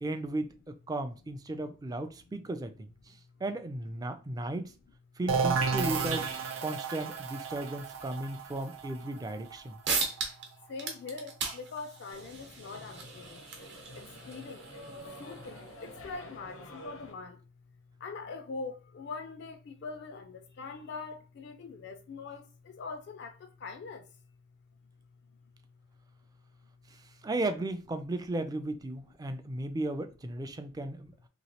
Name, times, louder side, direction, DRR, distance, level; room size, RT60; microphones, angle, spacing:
voice 1, 0.0-4.8 5.2-6.3 6.6-9.8 26.9-31.1, right 2 dB, 20° right, 0.3 m, -35 dB
sound 1, 5.3-10.9, right 5 dB, 90° right, 0.5 m, -33 dB
sound 2, 9.5-9.6 9.8-10.5 10.8-15.9, right 5 dB, 60° right, 0.8 m, -37 dB
voice 2, 10.7-13.4 13.9-17.4 18.0-24.1, left 4 dB, 55° left, 0.3 m, -43 dB
sound 3, 12.1-17.1, equal, 90° left, 0.7 m, -48 dB
3.0 x 2.8 x 2.8 m
head